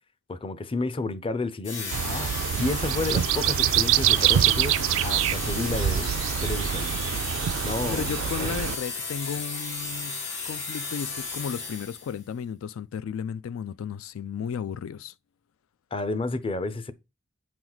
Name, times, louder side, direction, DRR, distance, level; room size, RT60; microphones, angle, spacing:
voice 1, 0.3-2.3 2.6-4.8 5.0-6.1 6.4-6.9 7.6-8.5 15.9-16.9, left 2 dB, 25° left, 0.5 m, -31 dB
sound 1, 1.6-12.2, left 4 dB, 65° left, 2.8 m, -34 dB
sound 2, 1.9-8.8, right 11 dB, 70° right, 0.3 m, -25 dB
voice 2, 7.9-15.1, left 7 dB, 85° left, 0.3 m, -34 dB
8.4 x 4.6 x 4.0 m
head